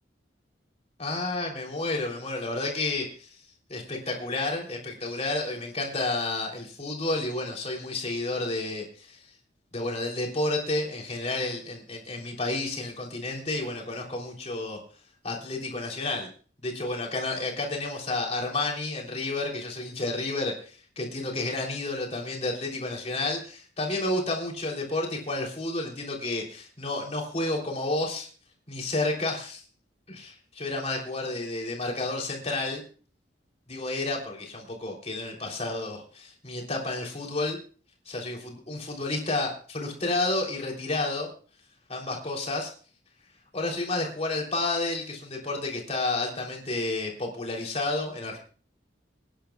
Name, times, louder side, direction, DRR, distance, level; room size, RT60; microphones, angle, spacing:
voice 1, 1.0-3.4 3.7-9.2 9.7-14.8 15.2-16.3 16.6-28.3 28.7-29.6 30.1-32.8 33.7-37.6 38.0-41.3 41.9-42.7 43.5-48.4, left 2 dB, 35° left, 0 dB, 3.3 m, -31 dB
26.5 x 10.0 x 2.3 m, 0.40 s
head